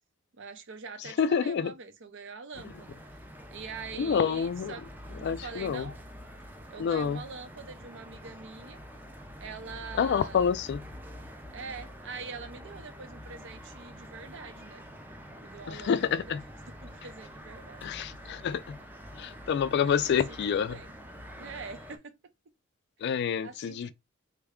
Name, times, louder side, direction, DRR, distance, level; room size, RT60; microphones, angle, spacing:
voice 1, 0.4-3.0 3.5-4.9 5.2-6.0 6.7-8.8 9.4-10.5 11.5-14.8 15.4-16.4 16.8-17.8 19.8-20.9 21.4-22.2 23.4-23.9, right 4 dB, 65° right, 0.6 m, -44 dB
voice 2, 1.0-1.7 3.9-4.7 5.2-5.9 6.8-7.2 10.0-10.8 15.7-16.4 17.8-18.8 19.2-20.8 23.0-23.9, left 7 dB, 55° left, 0.3 m, -28 dB
sound 1, 2.5-22.0, equal, 10° right, 0.5 m, -46 dB
3.3 x 2.2 x 3.5 m
head